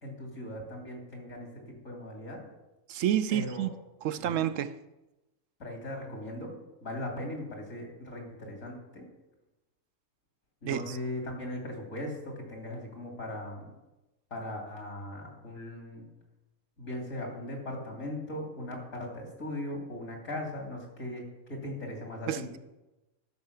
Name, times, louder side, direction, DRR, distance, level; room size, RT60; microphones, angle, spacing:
voice 1, 0.0-1.5 1.8-2.4 3.3-3.7 4.2-4.4 5.6-6.5 6.8-9.0 10.6-13.7 14.3-16.0 16.8-21.2 21.5-22.5, left 1 dB, 90° left, 0 dB, 3.3 m, -39 dB
voice 2, 2.9-3.7 4.0-4.8 10.6-11.0 22.3-22.6, right 11 dB, 80° right, 13 dB, 1.0 m, -29 dB
13.5 x 5.7 x 6.8 m, 1.0 s
omnidirectional pair, 1.3 m